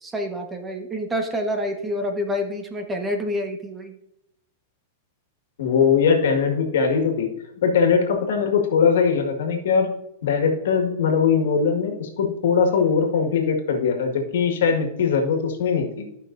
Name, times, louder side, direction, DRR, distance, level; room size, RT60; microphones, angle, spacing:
voice 1, 0.0-3.9, equal, 15° right, 4 dB, 1.3 m, -27 dB
voice 2, 5.6-7.3 7.6-9.9 10.2-16.1, left 6 dB, 75° left, 4 dB, 1.8 m, -21 dB
14.5 x 5.7 x 2.6 m, 0.83 s
hypercardioid pair, 135°, 0 cm